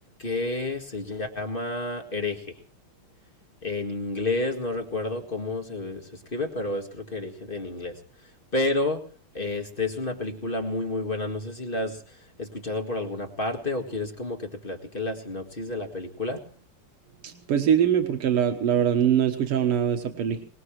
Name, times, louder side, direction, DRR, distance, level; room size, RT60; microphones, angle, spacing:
voice 1, 0.2-2.6 3.6-8.0 8.5-9.0 9.3-16.5, left 2 dB, 25° left, 3 dB, 1.7 m, -30 dB
voice 2, 17.2-20.4, right 9 dB, 85° right, 6 dB, 2.3 m, -23 dB
23.0 x 20.0 x 3.1 m, 0.40 s
omnidirectional pair, 2.4 m